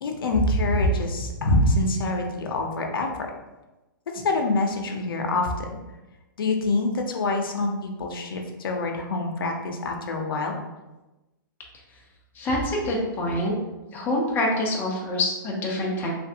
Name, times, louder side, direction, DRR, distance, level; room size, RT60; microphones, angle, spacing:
voice 1, 0.0-3.1 4.1-5.7 6.4-10.6, left 2 dB, 90° left, 2 dB, 0.6 m, -25 dB
voice 2, 12.3-13.5 13.9-16.1, left 1 dB, 15° left, -2 dB, 0.5 m, -26 dB
3.1 x 2.5 x 2.7 m, 1.1 s
hypercardioid pair, 150°, 11 cm